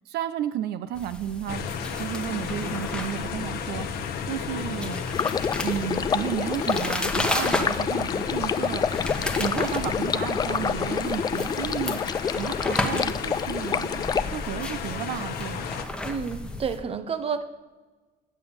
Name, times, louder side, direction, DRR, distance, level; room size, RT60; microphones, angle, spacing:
voice 1, 0.1-1.7 2.0-5.0 5.6-9.1 9.4-12.0 12.4-14.0 14.3-15.6, right 11 dB, 75° right, 12 dB, 0.5 m, -33 dB
sound 1, 0.9-16.8, left 1 dB, 5° left, 1.1 m, -34 dB
sound 2, 1.5-15.9, left 7 dB, 65° left, 1.0 m, -33 dB
Stream, 5.1-14.2, left 6 dB, 25° left, 0.3 m, -28 dB
voice 2, 16.0-17.4, right 6 dB, 35° right, 12 dB, 0.7 m, -30 dB
8.4 x 6.8 x 6.9 m, 1.3 s
cardioid pair, 110°, 17 cm